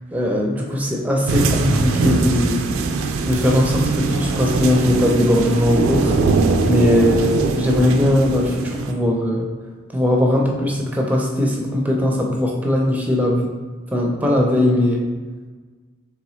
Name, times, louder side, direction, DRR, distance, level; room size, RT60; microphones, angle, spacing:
voice 1, 0.1-2.6 3.2-6.1 6.7-9.5 9.9-13.5 13.9-15.0, left 1 dB, 10° right, -1 dB, 0.4 m, -19 dB
sound 1, 1.3-8.9, right 3 dB, 90° right, 0.4 m, -21 dB
3.8 x 3.2 x 3.0 m, 1.4 s
head